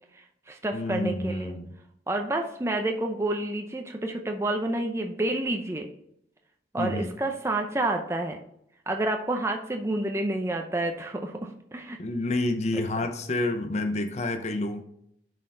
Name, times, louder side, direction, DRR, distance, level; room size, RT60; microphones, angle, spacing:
voice 1, 0.1-1.5 2.1-5.9 6.7-8.4 8.9-12.0 12.7-12.8, right 2 dB, 15° right, 3 dB, 0.5 m, -29 dB
voice 2, 0.7-1.7 6.8-7.1 12.0-14.8, left 2 dB, 40° left, 6 dB, 0.6 m, -29 dB
10.5 x 4.2 x 3.8 m, 0.74 s
head